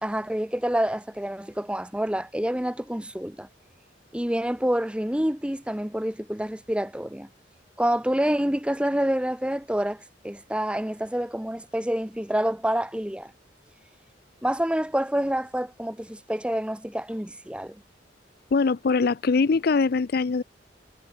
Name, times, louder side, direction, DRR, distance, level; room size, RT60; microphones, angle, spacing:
voice 1, 0.0-3.5 4.1-7.3 7.8-13.3 14.4-17.8, right 1 dB, 5° right, 1.0 m, -27 dB
voice 2, 18.5-20.4, left 4 dB, 55° left, 0.5 m, -22 dB
head